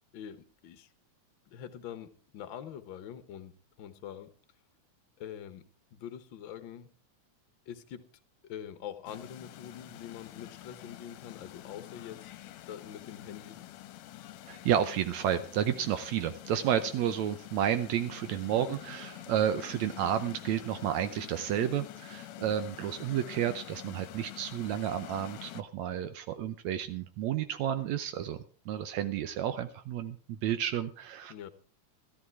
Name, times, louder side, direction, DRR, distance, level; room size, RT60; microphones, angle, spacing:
voice 1, 0.1-0.9 1.5-4.3 5.2-5.6 5.9-6.9 7.7-8.1 8.4-12.3 12.7-13.6 18.5-18.8 31.3-31.5, left 9 dB, 55° left, 11 dB, 1.5 m, -44 dB
sound 1, 9.1-25.6, left 14 dB, 75° left, 1.9 m, -47 dB
voice 2, 14.5-28.4 28.7-31.3, right 10 dB, 75° right, 10 dB, 2.0 m, -31 dB
14.0 x 12.5 x 4.6 m, 0.39 s
omnidirectional pair, 3.3 m